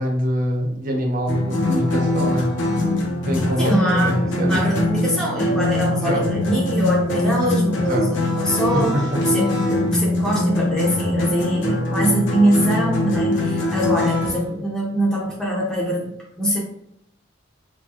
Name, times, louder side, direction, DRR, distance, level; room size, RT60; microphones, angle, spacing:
voice 1, 0.0-2.5 3.2-4.9 5.9-6.3 7.8-8.1 8.7-9.1, equal, 40° right, 0 dB, 0.7 m, -24 dB
sound 1, 1.3-14.4, left 1 dB, 65° left, 0.8 m, -22 dB
voice 2, 3.6-4.2 4.5-16.6, equal, 5° left, -5 dB, 0.7 m, -23 dB
4.6 x 2.3 x 2.9 m, 0.71 s
head